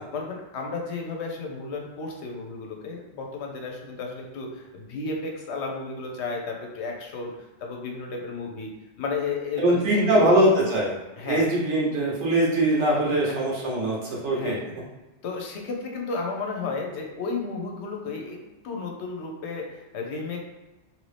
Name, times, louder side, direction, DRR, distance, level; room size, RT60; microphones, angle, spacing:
voice 1, 0.1-7.3 7.6-8.7 9.0-10.3 11.2-11.5 13.1-13.3 14.3-14.6 15.2-18.4 18.6-20.5, left 4 dB, 75° left, 1 dB, 0.9 m, -33 dB
voice 2, 9.6-14.6, right 1 dB, 85° right, -4 dB, 1.2 m, -22 dB
2.9 x 2.7 x 3.2 m, 1.0 s
omnidirectional pair, 1.2 m